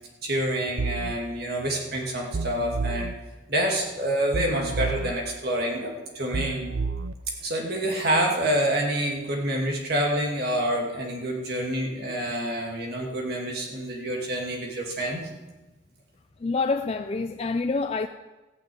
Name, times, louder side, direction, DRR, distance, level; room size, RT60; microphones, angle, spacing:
voice 1, 0.2-3.1 3.5-6.6 7.4-15.2, right 1 dB, 50° right, 0 dB, 2.6 m, -27 dB
sound 1, 0.8-1.1 2.3-3.1 4.3-5.1 6.3-7.1, right 4 dB, 70° right, 0.5 m, -30 dB
voice 2, 16.4-18.1, left 3 dB, 30° left, 7 dB, 0.4 m, -27 dB
14.0 x 6.6 x 8.8 m, 1.1 s
head